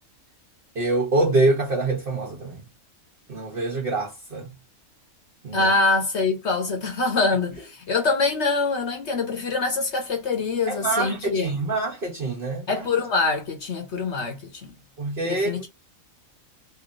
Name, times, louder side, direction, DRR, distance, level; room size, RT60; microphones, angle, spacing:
voice 1, 0.7-2.6 3.3-4.5 5.4-5.7 10.7-12.9 15.0-15.7, right 2 dB, 45° right, 1.3 m, -25 dB
voice 2, 5.5-11.6 12.7-14.7 15.3-15.7, left 3 dB, 60° left, 1.0 m, -24 dB
3.2 x 2.8 x 3.8 m
omnidirectional pair, 1.4 m